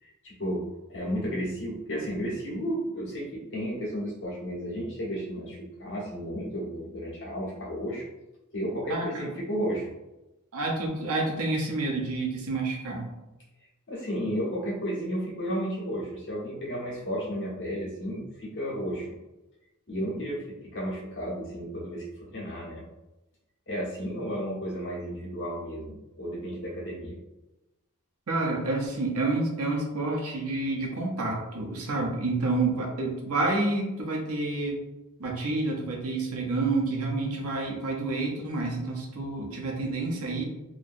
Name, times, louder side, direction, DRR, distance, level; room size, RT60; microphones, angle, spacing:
voice 1, 0.0-0.6 0.9-8.1 8.5-9.9 13.9-19.1 19.9-22.9 23.7-27.2, equal, 55° left, -6 dB, 1.2 m, -33 dB
voice 2, 8.9-9.3 10.5-13.1 28.3-34.8 35.2-40.4, right 2 dB, 75° right, 0 dB, 0.8 m, -29 dB
2.9 x 2.6 x 2.6 m, 1.0 s
head